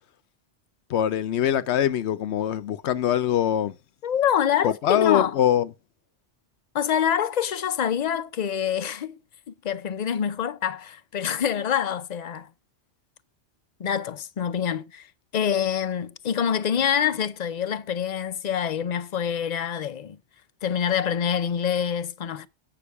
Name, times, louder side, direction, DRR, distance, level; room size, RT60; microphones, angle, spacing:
voice 1, 0.9-3.7 4.6-5.7, left 10 dB, 85° left, 0.9 m, -23 dB
voice 2, 4.0-5.4 6.7-9.2 9.5-12.5 13.8-15.1 15.3-20.2 20.6-22.5, left 8 dB, 45° left, 0.6 m, -26 dB
8.5 x 5.8 x 4.7 m
omnidirectional pair, 1.1 m